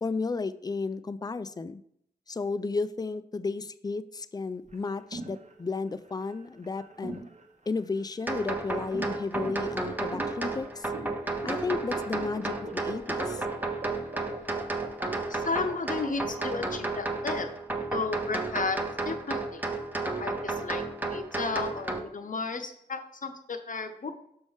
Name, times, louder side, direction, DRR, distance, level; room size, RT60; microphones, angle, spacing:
voice 1, 0.0-1.8 2.3-7.2 7.7-10.9 11.4-13.5, left 4 dB, 25° left, 15 dB, 0.3 m, -33 dB
sound 1, 4.7-17.1, right 3 dB, 45° right, 0.9 m, -42 dB
sound 2, 8.3-22.0, right 3 dB, 10° right, 0.7 m, -33 dB
voice 2, 15.3-17.5 17.9-19.6 20.2-20.9 21.1-24.1, left 4 dB, 50° left, 7 dB, 0.7 m, -33 dB
6.2 x 5.2 x 3.6 m, 0.71 s
wide cardioid pair, 70°, 17 cm